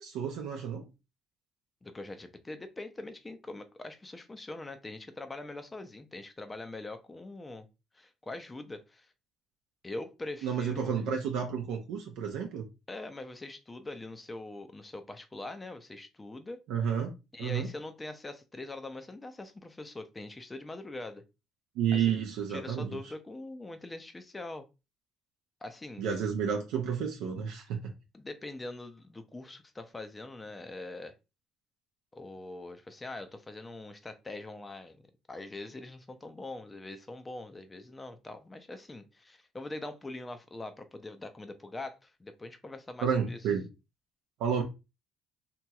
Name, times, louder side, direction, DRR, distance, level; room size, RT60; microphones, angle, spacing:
voice 1, 0.0-0.9 10.4-12.7 16.7-17.1 17.4-17.7 21.8-23.0 26.0-27.9 43.0-43.6 44.4-44.6, right 7 dB, 80° right, 0.6 m, -31 dB
voice 2, 1.8-7.7 7.9-9.1 9.8-10.9 12.9-16.6 17.3-21.2 21.9-22.1 22.5-24.6 25.6-26.0 28.1-31.2 32.1-35.0 35.3-43.4, left 2 dB, 20° left, 0.5 m, -43 dB
2.9 x 2.9 x 2.3 m
cardioid pair, 95°, 0 cm